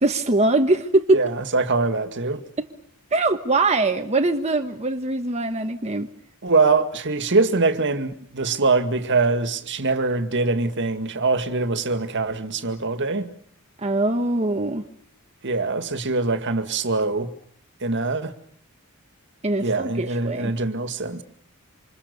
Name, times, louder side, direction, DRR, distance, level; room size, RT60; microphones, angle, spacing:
voice 1, 0.0-1.2 2.6-2.7 3.1-6.1 13.8-14.8 19.4-20.5, right 2 dB, 30° right, 1.3 m, -22 dB
voice 2, 1.1-2.4 6.4-13.3 15.4-17.3 17.8-18.3 19.6-21.2, right 3 dB, 55° right, 2.1 m, -23 dB
28.0 x 26.5 x 6.9 m
head